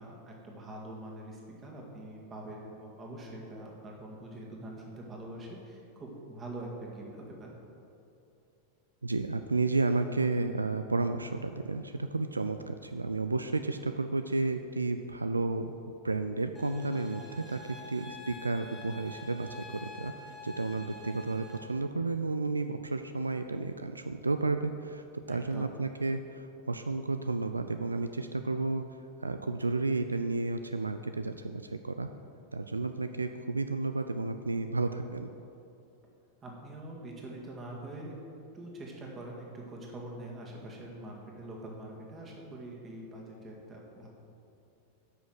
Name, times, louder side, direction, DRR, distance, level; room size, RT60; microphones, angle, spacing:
voice 1, 0.0-7.5 25.3-25.7 36.4-38.1 38.5-44.1, right 1 dB, 25° right, -1 dB, 1.9 m, -44 dB
voice 2, 9.0-15.7 16.0-28.8 29.2-32.1 32.5-35.3, right 3 dB, 80° right, 8 dB, 0.3 m, -32 dB
sound 1, 16.5-21.6, left 2 dB, 10° left, 2.1 m, -47 dB
9.3 x 6.1 x 6.3 m, 2.7 s
figure-of-eight pair, 90°, 0 cm